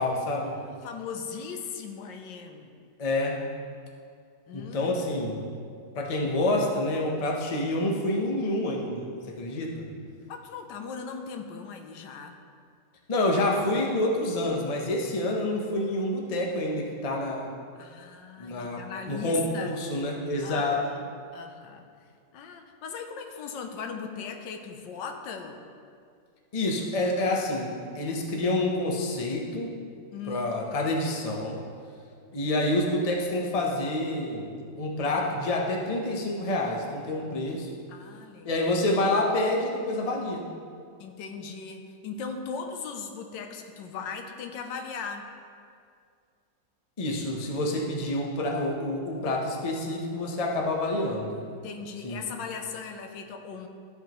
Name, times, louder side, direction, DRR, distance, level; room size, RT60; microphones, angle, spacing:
voice 1, 0.0-0.6 3.0-3.4 4.5-5.4 5.9-9.8 13.1-17.5 18.4-20.8 26.5-29.7 30.3-31.6 32.3-34.5 34.8-37.7 38.4-40.4 47.0-51.4 52.0-52.2, left 1 dB, 35° left, -1 dB, 0.6 m, -28 dB
voice 2, 0.6-2.8 4.5-4.9 10.3-12.4 17.8-19.9 20.4-21.0 21.3-21.9 22.3-25.6 30.1-30.5 37.9-38.5 41.0-45.3 51.5-53.7, left 5 dB, 85° left, 5 dB, 1.4 m, -38 dB
13.0 x 5.5 x 3.0 m, 2.3 s
omnidirectional pair, 1.9 m